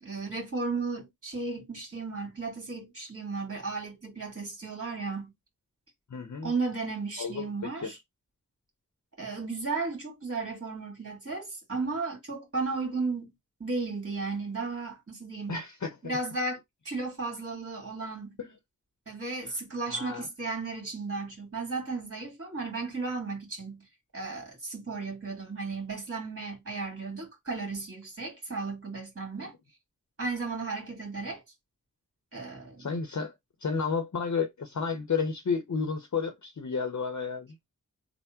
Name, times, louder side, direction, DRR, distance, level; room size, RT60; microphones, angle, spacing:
voice 1, 0.0-5.3 6.4-8.0 9.2-13.3 13.6-15.6 16.0-16.6 16.9-18.4 19.1-23.9 24.1-29.5 30.2-31.4 32.3-32.9, right 3 dB, 45° right, 2.0 m, -34 dB
voice 2, 6.1-6.5 7.2-7.9 15.5-15.9 18.4-18.5 19.9-20.3 32.8-33.3 33.6-37.6, left 5 dB, 60° left, 0.8 m, -31 dB
3.5 x 2.1 x 4.2 m
cardioid pair, 40°, 33 cm